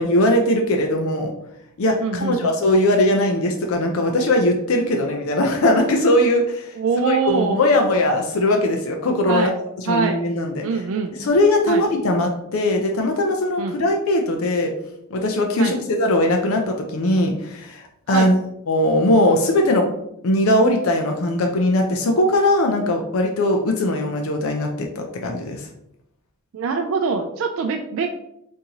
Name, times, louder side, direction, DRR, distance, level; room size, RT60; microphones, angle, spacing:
voice 1, 0.0-1.3 1.8-6.7 7.0-9.5 9.9-10.6 11.2-14.7 15.1-18.4 18.7-19.9 20.2-25.7, left 1 dB, 70° left, 3 dB, 0.5 m, -20 dB
voice 2, 2.0-2.6 6.8-7.7 9.3-9.5 9.9-10.2 10.6-11.3 11.7-11.9 13.6-13.7 15.6-15.8 18.1-18.3 26.5-28.1, right 5 dB, 65° right, 4 dB, 0.3 m, -23 dB
3.8 x 2.7 x 2.8 m, 0.77 s
head